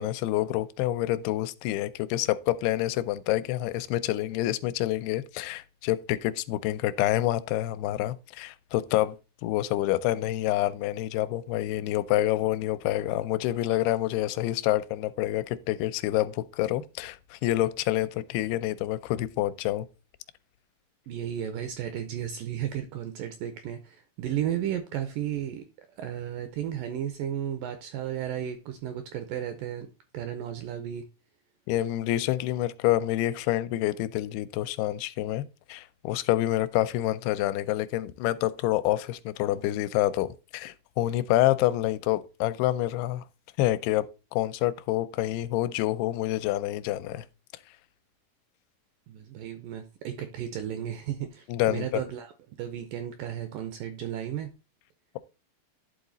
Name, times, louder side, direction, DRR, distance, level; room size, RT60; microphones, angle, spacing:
voice 1, 0.0-9.2 9.4-19.9 31.7-43.2 43.6-44.1 44.3-47.3 51.5-52.0, left 15 dB, 85° left, 2.5 m, -27 dB
voice 2, 21.1-25.7 26.0-29.9 30.1-31.1 49.1-52.3 52.6-54.5, right 10 dB, 80° right, 2.0 m, -34 dB
11.0 x 3.9 x 3.9 m
omnidirectional pair, 4.5 m